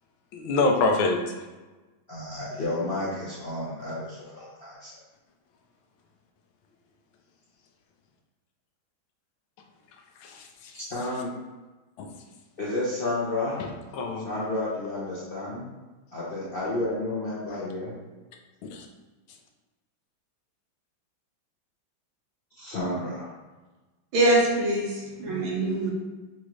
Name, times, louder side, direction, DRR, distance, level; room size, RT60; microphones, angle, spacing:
voice 1, 0.3-1.5 10.2-10.8 12.0-12.1 13.6-14.3 18.6-18.9, left 3 dB, 85° left, 3 dB, 1.4 m, -27 dB
voice 2, 2.1-4.9 10.7-11.3 12.6-13.6 14.2-15.6 16.1-17.9 22.6-23.3, left 2 dB, 50° left, -8 dB, 0.7 m, -31 dB
voice 3, 24.1-25.9, right 1 dB, 80° right, -3 dB, 1.8 m, -23 dB
6.1 x 2.6 x 3.1 m, 1.2 s
omnidirectional pair, 2.2 m